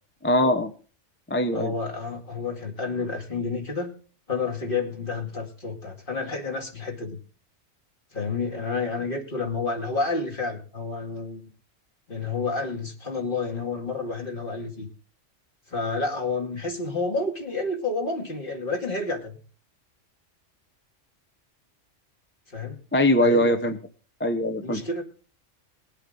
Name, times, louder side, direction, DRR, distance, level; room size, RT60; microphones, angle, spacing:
voice 1, 0.2-0.7 1.3-1.7 22.9-23.8 24.2-24.8, left 1 dB, 10° left, 8 dB, 0.6 m, -21 dB
voice 2, 1.5-3.9 4.3-7.2 8.1-11.4 12.1-14.9 15.7-19.3 22.5-22.8 23.2-23.6 24.6-25.0, left 3 dB, 40° left, 2 dB, 2.5 m, -30 dB
21.0 x 8.3 x 3.8 m, 0.37 s
omnidirectional pair, 1.3 m